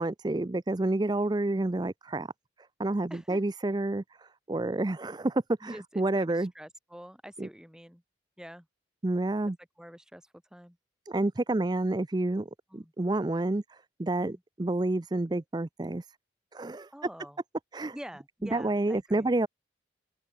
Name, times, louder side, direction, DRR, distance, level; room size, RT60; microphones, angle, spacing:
voice 1, 0.0-2.3 2.8-6.5 7.4-7.5 9.0-9.6 11.1-16.1 16.5-16.9 17.7-17.9 18.5-19.5, right 2 dB, 20° right, 0.5 m, -29 dB
voice 2, 5.6-8.0 8.4-8.7 9.8-10.8 12.7-12.9 14.2-14.4 16.9-17.4 17.9-19.3, equal, 5° right, 5.9 m, -47 dB
open air
head